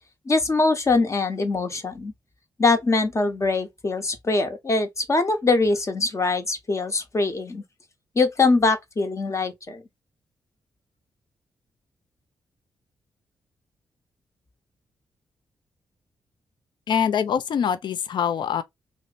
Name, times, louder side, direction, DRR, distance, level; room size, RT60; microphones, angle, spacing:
voice 1, 0.3-2.1 2.6-7.6 8.2-9.8, left 3 dB, 35° left, 0.9 m, -23 dB
voice 2, 16.9-18.6, left 8 dB, 65° left, 0.4 m, -24 dB
2.9 x 2.0 x 2.3 m
supercardioid pair, 50°, 8 cm